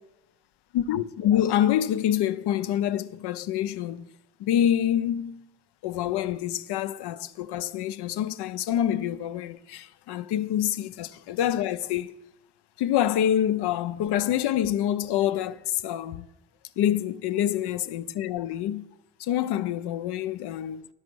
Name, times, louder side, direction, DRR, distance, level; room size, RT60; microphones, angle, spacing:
voice 1, 0.7-4.1 4.4-5.5 5.8-12.1 12.8-16.3 16.8-18.9 19.2-20.8, left 11 dB, 70° left, 0.6 m, -26 dB
9.6 x 6.2 x 6.1 m
supercardioid pair, 70°, 42 cm